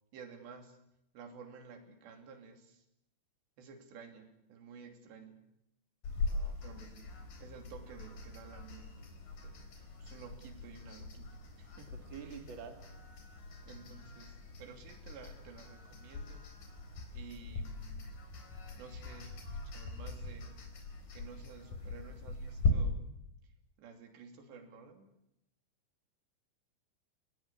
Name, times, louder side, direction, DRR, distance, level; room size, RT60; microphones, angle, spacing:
voice 1, 0.1-0.8 1.1-2.8 3.6-5.4 6.6-9.1 9.4-12.4 13.6-16.5 17.1-18.1 18.8-19.4 19.6-20.6 21.1-23.1 23.4-25.2, right 5 dB, 70° right, 5 dB, 5.0 m, -53 dB
sound 1, 6.0-22.7, left 4 dB, 50° left, 5.8 m, -41 dB
voice 2, 6.1-6.7 12.1-12.8, right 7 dB, 35° right, 6 dB, 2.3 m, -48 dB
30.0 x 19.0 x 8.5 m, 0.84 s
omnidirectional pair, 5.2 m